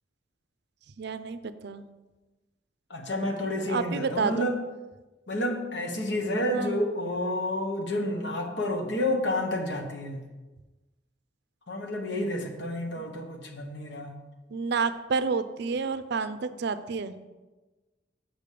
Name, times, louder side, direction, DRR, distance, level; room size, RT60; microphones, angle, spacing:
voice 1, 1.0-1.8 3.7-4.5 6.5-6.8 13.0-13.1 14.5-17.1, right 5 dB, 65° right, 12 dB, 0.5 m, -30 dB
voice 2, 2.9-4.6 5.3-10.2 11.7-14.1, left 1 dB, 70° left, 3 dB, 1.2 m, -30 dB
6.2 x 5.2 x 6.7 m, 1.2 s
head